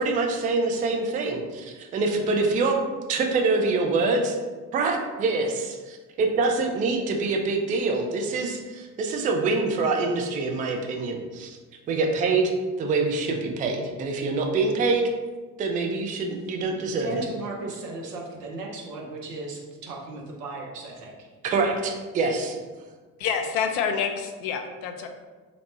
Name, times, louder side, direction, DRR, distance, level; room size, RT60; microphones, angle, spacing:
voice 1, 0.0-2.8 3.1-4.4 4.7-11.5 11.9-12.5 12.8-15.1 15.6-17.2 21.4-22.6, right 3 dB, 20° right, 2 dB, 0.3 m, -25 dB
voice 2, 16.9-21.3, right 2 dB, 75° right, -2 dB, 0.8 m, -36 dB
voice 3, 23.2-25.1, left 7 dB, 50° left, 5 dB, 0.5 m, -27 dB
3.0 x 2.1 x 4.1 m, 1.3 s
figure-of-eight pair, 50°, 48 cm